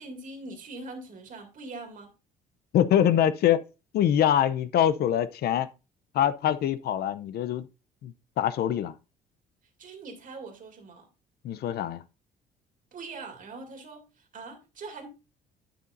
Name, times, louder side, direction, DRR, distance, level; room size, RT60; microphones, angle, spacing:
voice 1, 0.0-2.1 9.8-11.1 12.9-15.1, right 3 dB, 50° right, 2.2 m, -42 dB
voice 2, 2.7-3.6 3.9-5.7 6.1-7.6 8.0-8.9 11.4-12.0, left 10 dB, 65° left, 0.6 m, -24 dB
10.0 x 7.0 x 2.6 m
cardioid pair, 100°, 18 cm